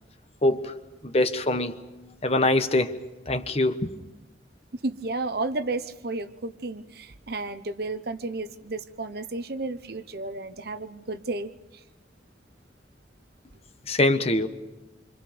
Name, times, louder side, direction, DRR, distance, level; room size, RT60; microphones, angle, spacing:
voice 1, 0.4-0.8 1.0-1.8 2.2-3.0 3.3-3.9 13.9-14.5, left 2 dB, 35° left, 1.2 m, -23 dB
voice 2, 4.8-11.8, right 2 dB, 60° right, 1.0 m, -32 dB
28.0 x 25.5 x 5.2 m
head